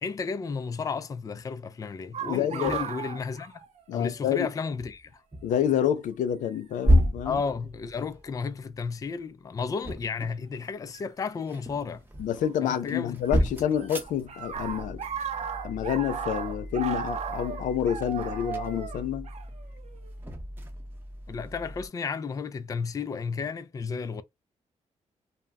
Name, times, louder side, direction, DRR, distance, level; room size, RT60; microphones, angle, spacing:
voice 1, 0.0-3.6 3.9-5.2 7.2-12.0 12.6-13.5 21.3-24.2, left 5 dB, 30° left, 0.3 m, -33 dB
sound 1, 2.1-4.2 4.5-4.6 5.6-5.9 6.9-7.1 7.8-8.3 10.9-11.0 12.4-13.3 13.5-20.1, right 7 dB, 60° right, 0.6 m, -36 dB
voice 2, 2.3-2.8 3.9-4.5 5.4-7.4 12.2-15.0 15.6-19.3, left 10 dB, 90° left, 0.4 m, -28 dB
sound 2, 2.7-3.0 4.8-5.7 6.1-6.4 6.8-8.8 9.5-10.9 11.3-21.9, equal, 15° right, 0.7 m, -32 dB
2.2 x 2.0 x 3.4 m
cardioid pair, 110°, 13 cm